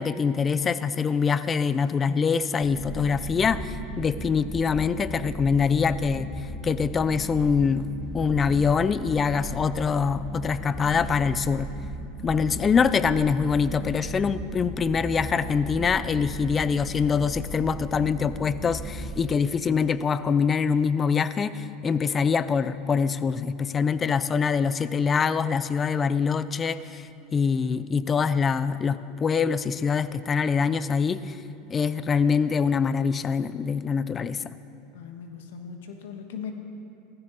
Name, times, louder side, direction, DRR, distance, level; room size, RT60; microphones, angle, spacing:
voice 1, 0.0-6.3 6.6-7.9 8.1-11.7 12.2-31.4 31.7-34.5, left 6 dB, 25° left, 15 dB, 0.4 m, -24 dB
sound 1, 2.6-19.1, right 2 dB, ahead, 2.5 m, -37 dB
voice 2, 34.9-36.5, left 7 dB, 85° left, 5 dB, 1.2 m, -39 dB
16.0 x 14.0 x 4.0 m, 2.7 s
supercardioid pair, 120°, 0 cm